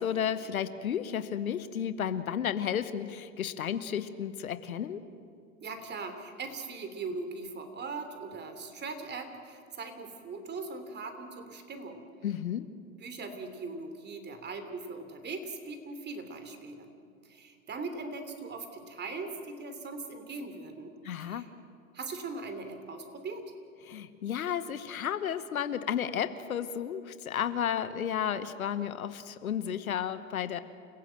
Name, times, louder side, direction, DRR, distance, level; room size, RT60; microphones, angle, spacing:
voice 1, 0.0-5.0 12.2-12.7 21.0-21.5 23.8-30.6, left 9 dB, 85° left, 12 dB, 1.2 m, -32 dB
voice 2, 5.6-12.0 13.0-16.9 17.2-20.9 21.2-21.5 21.9-23.4, right 3 dB, 25° right, 7 dB, 3.1 m, -40 dB
29.0 x 16.0 x 7.8 m, 2.3 s
hypercardioid pair, 100°, 42 cm